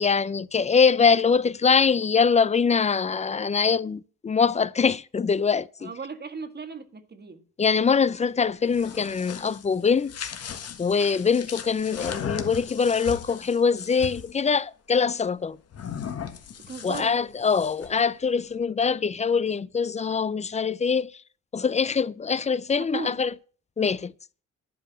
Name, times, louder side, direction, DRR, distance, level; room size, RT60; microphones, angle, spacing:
voice 1, 0.0-5.9 7.6-10.3 10.8-15.6 16.8-21.1 21.5-23.3 23.8-24.1, left 5 dB, 25° left, 0.4 m, -23 dB
voice 2, 5.8-7.4 16.7-17.2 22.8-23.2, right 4 dB, 35° right, 1.6 m, -36 dB
sound 1, 8.5-14.3 15.7-18.0, left 8 dB, 55° left, 1.6 m, -37 dB
11.0 x 5.4 x 8.3 m
cardioid pair, 90°, 30 cm